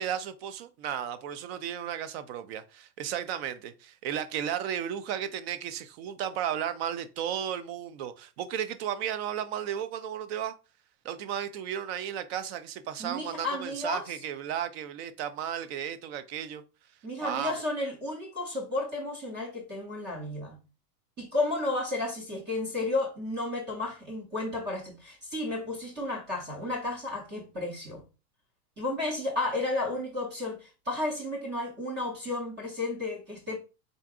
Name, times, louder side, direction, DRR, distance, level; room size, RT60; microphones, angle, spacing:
voice 1, 0.0-10.5 11.0-16.6 17.2-17.5, right 9 dB, 45° right, 0.5 m, -34 dB
voice 2, 13.0-14.0 17.0-20.6 21.2-28.0 28.8-33.6, left 2 dB, 20° right, 0.8 m, -32 dB
3.8 x 3.4 x 2.4 m
supercardioid pair, 135°, 47 cm